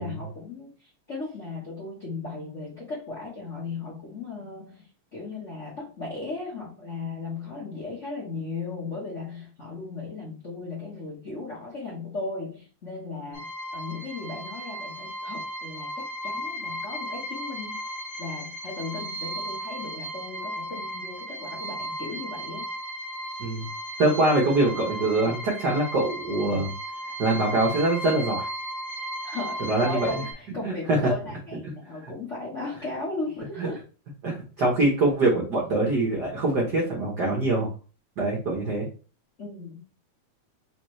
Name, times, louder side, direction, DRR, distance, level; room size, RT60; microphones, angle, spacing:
voice 1, 0.0-17.8 18.2-22.7 29.2-33.8 39.4-39.8, left 3 dB, 65° left, -4 dB, 0.7 m, -36 dB
sound 1, 13.3-30.3, equal, 40° left, 2.3 m, -35 dB
voice 2, 24.0-26.7 27.2-28.5 29.7-30.2 30.6-31.0 32.0-32.1 33.6-33.7 34.2-37.7 38.2-38.9, right 2 dB, 85° right, -2 dB, 0.9 m, -24 dB
5.1 x 3.2 x 3.2 m, 0.35 s
omnidirectional pair, 3.5 m